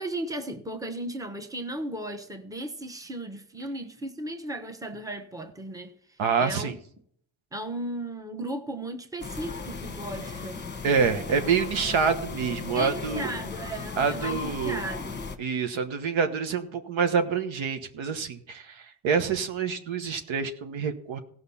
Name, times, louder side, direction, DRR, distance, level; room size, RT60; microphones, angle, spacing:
voice 1, 0.0-5.9 6.4-6.8 7.5-10.6 12.7-15.2, right 1 dB, 5° right, 5 dB, 1.1 m, -36 dB
voice 2, 6.2-6.8 10.8-13.3 14.0-14.8 15.4-21.2, right 6 dB, 75° right, 8 dB, 1.3 m, -27 dB
sound 1, 9.2-15.4, left 4 dB, 20° left, 1.2 m, -36 dB
16.0 x 5.7 x 5.6 m, 0.64 s
cardioid pair, 95°, 46 cm